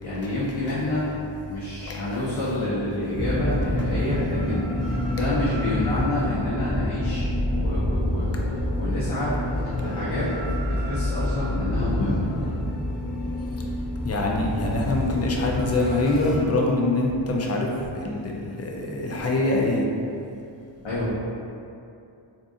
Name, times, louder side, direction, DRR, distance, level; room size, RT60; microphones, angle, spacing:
voice 1, 0.0-1.0 1.5-4.6 5.1-9.3 9.6-10.3 10.6-12.3 20.8-21.1, left 1 dB, 70° left, -9 dB, 0.7 m, -29 dB
sound 1, 3.1-16.4, left 1 dB, ahead, 0.7 m, -27 dB
voice 2, 11.5-12.4 14.0-17.7 18.0-19.8, left 2 dB, 35° left, -1 dB, 0.4 m, -24 dB
2.6 x 2.5 x 3.6 m, 2.6 s
wide cardioid pair, 115°, 48 cm